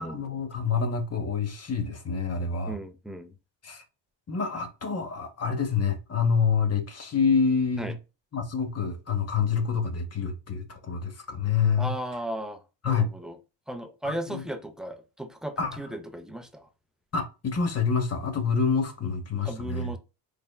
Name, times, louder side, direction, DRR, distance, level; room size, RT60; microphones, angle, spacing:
voice 1, 0.0-2.8 3.6-3.8 4.3-7.9 8.3-11.9 12.8-13.1 14.0-14.4 15.6-15.7 17.1-19.9, left 5 dB, 35° left, 0.7 m, -27 dB
voice 2, 2.7-3.3 7.8-7.9 11.8-12.6 12.9-13.4 13.7-16.7 19.4-20.0, right 1 dB, ahead, 0.3 m, -36 dB
4.1 x 3.4 x 2.2 m
cardioid pair, 120°, 44 cm